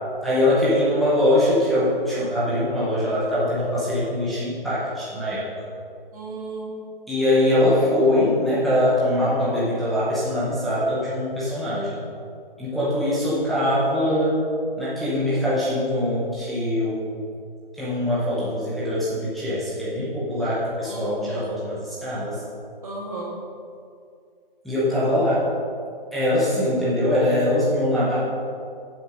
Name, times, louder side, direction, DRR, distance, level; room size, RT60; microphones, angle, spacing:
voice 1, 0.2-5.4 7.1-12.0 12.6-14.3 14.8-17.0 17.8-22.4 24.6-25.4 26.1-28.2, left 1 dB, ahead, -11 dB, 0.7 m, -22 dB
voice 2, 6.1-6.8 20.8-21.5 22.8-23.4, right 2 dB, 40° right, -3 dB, 2.6 m, -34 dB
8.7 x 7.4 x 6.1 m, 2.3 s
hypercardioid pair, 160°, 29 cm